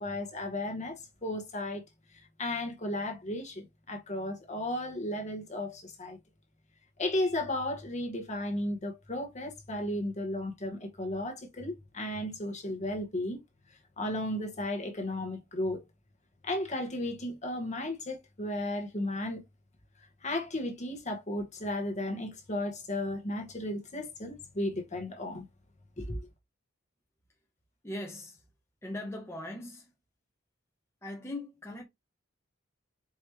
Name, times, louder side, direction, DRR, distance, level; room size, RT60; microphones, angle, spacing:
voice 1, 0.0-1.8 2.1-6.2 7.0-13.4 14.0-15.8 16.4-19.4 20.2-25.4 26.0-26.3, left 1 dB, 35° left, 1.2 m, -34 dB
voice 2, 27.8-28.4 28.8-29.9 31.0-31.8, left 1 dB, 15° left, 0.7 m, -40 dB
4.7 x 3.0 x 3.0 m
head